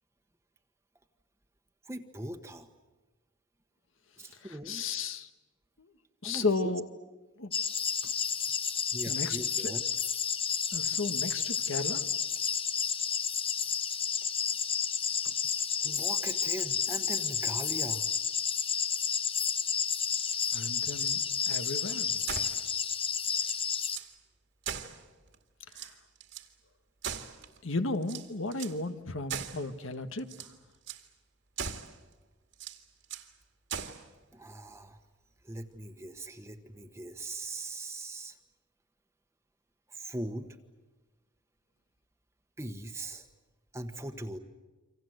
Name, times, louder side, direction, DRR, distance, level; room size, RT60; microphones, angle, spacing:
voice 1, 1.8-2.7 4.2-4.8 6.2-6.7 8.0-8.1 8.9-9.8 15.2-15.3 15.8-18.1 34.3-35.0 35.4-38.4 39.9-40.6 42.6-43.3 43.7-44.4, right 1 dB, 15° right, 5 dB, 1.2 m, -40 dB
voice 2, 4.3-5.3 5.8-5.9 6.2-6.8 7.4-7.5 9.1-9.7 10.7-12.0 20.5-22.2 25.7-25.9 27.6-30.5, left 3 dB, 85° left, 9 dB, 1.6 m, -34 dB
sound 1, 7.5-24.0, left 7 dB, 30° left, 1.0 m, -31 dB
sound 2, 20.9-21.7 22.2-22.6 23.0-23.1 23.3-24.1 24.6-25.4 25.7-26.5 27.0-27.6 28.0-28.8 29.3-29.7 30.2-30.5 30.9-31.1 31.6-32.0 32.5-33.3 33.7-34.1, right 7 dB, 70° right, 2.2 m, -40 dB
29.0 x 25.0 x 8.0 m, 1.2 s
head